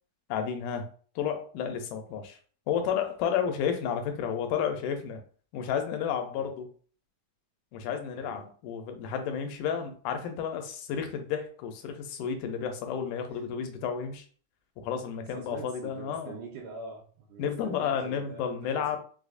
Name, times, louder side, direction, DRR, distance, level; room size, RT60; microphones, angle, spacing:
voice 1, 0.3-0.9 1.2-2.4 2.7-5.2 5.5-6.7 7.7-14.3 14.8-16.4 17.4-19.0, left 7 dB, 85° left, 6 dB, 2.1 m, -31 dB
voice 2, 13.3-13.7 15.3-19.0, right 4 dB, 80° right, -3 dB, 2.1 m, -44 dB
5.2 x 2.0 x 2.5 m, 0.43 s
omnidirectional pair, 3.6 m